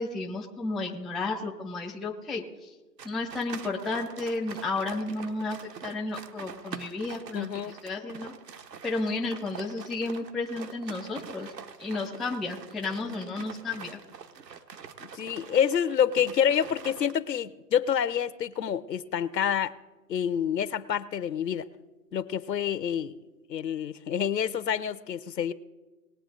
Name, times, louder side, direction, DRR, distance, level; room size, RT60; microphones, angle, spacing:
voice 1, 0.0-2.7 3.0-5.6 5.8-8.3 8.8-11.5 11.8-14.0, left 3 dB, ahead, -1 dB, 0.3 m, -32 dB
sound 1, 3.0-17.1, right 6 dB, 75° right, 1.3 m, -45 dB
voice 2, 7.3-7.7 15.2-19.7 20.1-21.7 22.1-23.1 23.5-25.5, left 8 dB, 75° left, 16 dB, 0.9 m, -27 dB
20.0 x 8.0 x 3.8 m, 1.1 s
hypercardioid pair, 145°, 50 cm